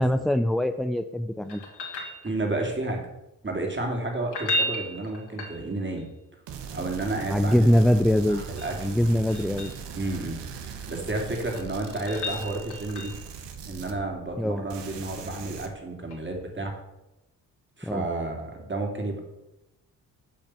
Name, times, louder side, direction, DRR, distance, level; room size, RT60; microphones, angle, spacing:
voice 1, 0.0-1.6 7.3-8.4 8.8-9.7 14.4-14.6 17.8-18.1, equal, ahead, 9 dB, 0.3 m, -23 dB
sound 1, 1.5-2.7 4.2-6.0 8.2-9.8 11.2-13.3 16.1-16.2, left 1 dB, 60° left, 2.9 m, -34 dB
voice 2, 2.2-3.0 3.4-6.1 6.7-7.7 8.3-9.1 9.9-13.1 13.7-16.7 17.8-19.2, right 2 dB, 25° right, 1 dB, 2.8 m, -31 dB
sound 2, 6.5-14.4 14.7-15.7, right 7 dB, 65° right, 1.3 m, -40 dB
8.8 x 5.4 x 6.1 m, 0.95 s
supercardioid pair, 55°, 45 cm